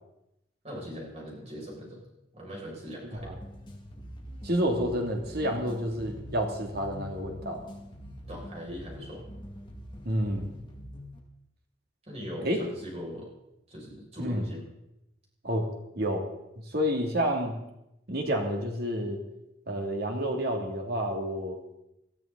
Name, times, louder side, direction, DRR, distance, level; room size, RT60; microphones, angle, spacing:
voice 1, 0.6-2.0 2.3-3.3 8.3-9.2 12.1-13.3 13.7-14.6, equal, 35° right, -3 dB, 6.4 m, -40 dB
sound 1, 3.2-11.2, equal, 25° left, 2.3 m, -44 dB
voice 2, 4.4-7.6 10.0-10.5 12.4-12.6 14.2-14.4 15.4-15.7 16.0-16.2 16.6-17.6 18.1-19.2 19.7-21.6, equal, 60° right, 2 dB, 2.7 m, -29 dB
20.0 x 13.0 x 4.1 m, 0.87 s
head